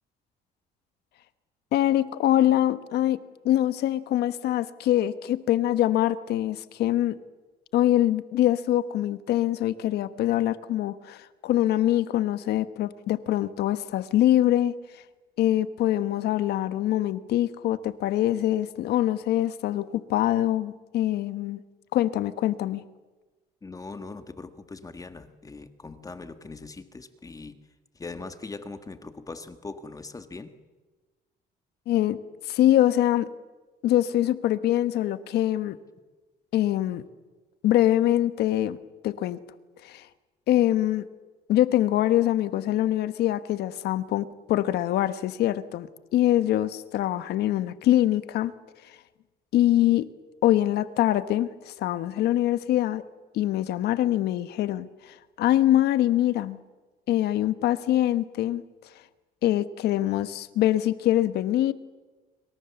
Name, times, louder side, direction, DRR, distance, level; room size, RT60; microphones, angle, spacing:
voice 1, 1.7-3.2 3.4-7.2 7.7-14.8 15.4-21.6 21.9-22.8 31.9-32.2 32.5-33.3 33.8-35.8 36.5-37.0 37.6-38.8 39.0-39.4 39.8-40.1 40.5-41.0 41.5-48.5 49.5-50.1 50.4-53.0 53.3-56.6 57.1-58.6 59.4-61.7, left 13 dB, 75° left, 13 dB, 1.2 m, -24 dB
voice 2, 23.6-27.6 27.9-30.5, left 3 dB, 20° left, 9 dB, 1.7 m, -41 dB
26.5 x 24.5 x 7.1 m, 1.2 s
cardioid pair, 110°, 17 cm